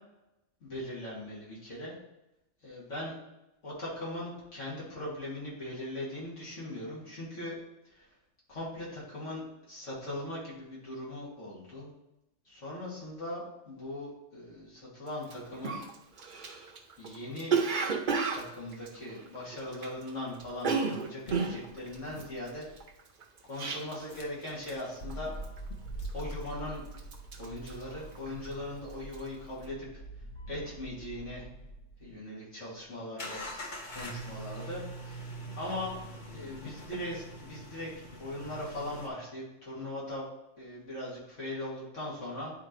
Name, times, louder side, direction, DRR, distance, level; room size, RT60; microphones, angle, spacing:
voice 1, 0.6-1.9 2.6-3.1 3.6-7.6 8.0-8.1 8.5-11.9 12.5-15.8 17.0-17.5 18.3-22.7 23.5-25.3 26.1-26.8 27.4-30.0 30.5-31.5 32.0-33.5 33.9-35.2 35.6-35.9 36.3-37.9 38.2-40.3 40.6-42.5, left 1 dB, 75° left, -6 dB, 2.9 m, -39 dB
Cough, 15.2-15.3 15.6-20.1 20.3-24.2 24.5-24.8 25.1-25.6 26.0-26.6 26.9-28.6 28.9-29.2, right 5 dB, 45° right, 0.8 m, -32 dB
sound 1, 21.3-22.9 24.0-32.1 33.2-39.1, right 1 dB, 40° left, 1.1 m, -44 dB
10.0 x 4.3 x 3.2 m, 0.89 s
omnidirectional pair, 1.3 m